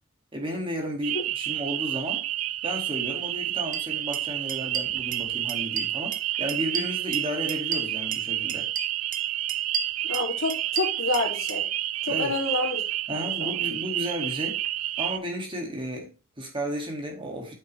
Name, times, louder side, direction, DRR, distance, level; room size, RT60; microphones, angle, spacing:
voice 1, 0.3-2.3 2.6-8.7 12.1-12.4 13.1-14.6 15.0-17.5, equal, 25° right, 2.1 m, -33 dB
sound 1, 1.0-15.2, right 14 dB, 85° right, 0.4 m, -30 dB
sound 2, 3.7-3.8 4.1-4.2 4.5-5.2 5.5-6.2 6.5-8.2 8.5-9.2 9.5-11.6, right 6 dB, 40° right, 0.8 m, -33 dB
voice 2, 10.0-11.7 12.0-12.8 13.1-13.6, left 2 dB, 85° left, 2.7 m, -29 dB
9.0 x 6.3 x 3.2 m
head